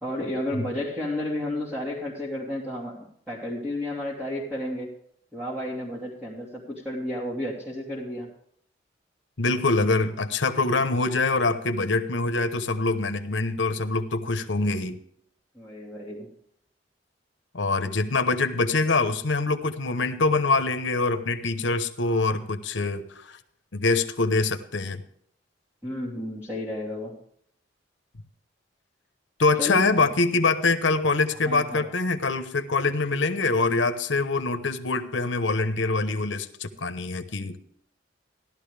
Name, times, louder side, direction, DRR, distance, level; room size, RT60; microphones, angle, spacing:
voice 1, 0.0-4.9 5.3-8.3 15.5-16.3 25.8-27.2 29.6-29.8 31.4-31.9, left 1 dB, 10° right, -6 dB, 2.8 m, -32 dB
voice 2, 9.4-15.0 17.5-23.4 23.7-25.0 29.4-37.6, left 3 dB, 75° left, 9 dB, 1.0 m, -24 dB
16.0 x 12.0 x 3.4 m, 0.66 s
head